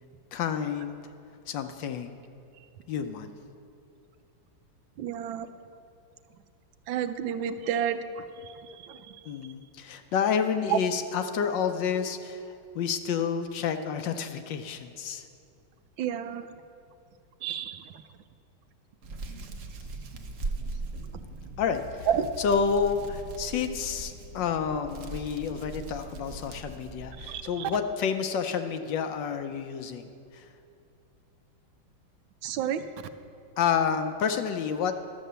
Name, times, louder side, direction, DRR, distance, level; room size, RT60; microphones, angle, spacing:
voice 1, 0.3-1.0 1.5-2.2 2.9-3.3 9.2-15.2 21.6-22.1 22.4-30.1 30.3-30.5 33.6-34.9, left 7 dB, 70° left, 8 dB, 1.2 m, -29 dB
voice 2, 5.0-5.5 6.9-9.2 10.6-10.8 16.0-16.6 17.4-18.0 21.1-21.2 22.1-22.3 27.2-27.7 32.4-32.8, right 9 dB, 75° right, 9 dB, 1.3 m, -31 dB
Hands, 19.0-27.4, right 2 dB, 55° right, 0.9 m, -39 dB
12.0 x 7.8 x 6.8 m, 2.6 s
omnidirectional pair, 2.2 m